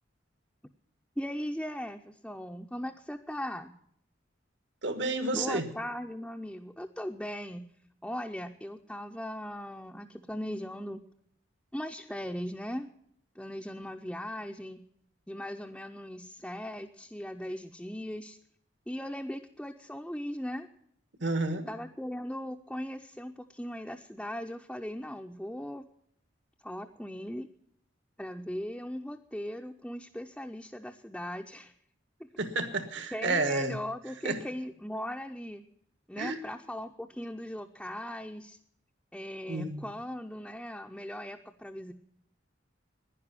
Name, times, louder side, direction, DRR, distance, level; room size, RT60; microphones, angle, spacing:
voice 1, 1.2-3.7 5.3-7.7 8.0-11.0 11.7-12.9 13.4-14.8 15.3-18.4 18.9-20.7 21.7-25.8 26.6-27.5 28.2-31.7 32.2-32.3 33.1-35.6 36.1-38.6 39.1-41.9, equal, 5° left, 2 dB, 0.5 m, -38 dB
voice 2, 4.8-5.7 21.2-21.7 32.4-33.8 34.2-34.4 36.2-36.4 39.5-39.9, right 3 dB, 75° right, 9 dB, 1.5 m, -30 dB
11.0 x 10.5 x 9.6 m, 0.73 s
head